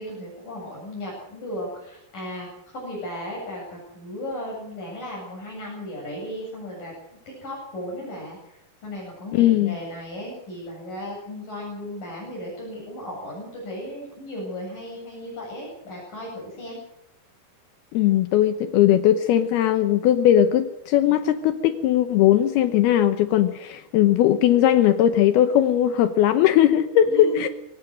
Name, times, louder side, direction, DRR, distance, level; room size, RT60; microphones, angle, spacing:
voice 1, 0.0-2.5 2.7-6.9 7.3-16.8 27.1-27.5, equal, 55° left, -3 dB, 9.6 m, -35 dB
voice 2, 9.3-9.8 17.9-27.5, left 11 dB, 75° left, 10 dB, 2.8 m, -19 dB
23.0 x 18.5 x 6.5 m, 0.80 s
omnidirectional pair, 4.7 m